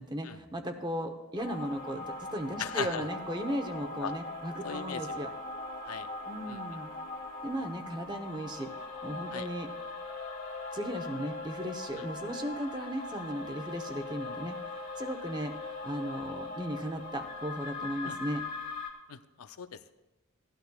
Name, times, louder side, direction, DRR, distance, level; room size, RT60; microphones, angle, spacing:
voice 1, 0.0-5.3 6.3-6.9 7.4-8.7 9.0-9.7 10.7-15.5 15.8-18.4, right 1 dB, 20° right, 6 dB, 0.8 m, -36 dB
sound 1, 1.4-18.9, left 3 dB, 40° left, 1.7 m, -40 dB
voice 2, 2.6-3.0 4.0-4.1 4.6-5.3 5.8-6.1 6.5-6.6 9.3-9.5 11.9-12.0 18.0-18.2 19.1-19.9, left 7 dB, 90° left, 12 dB, 0.5 m, -38 dB
17.5 x 12.0 x 2.3 m, 1.0 s
head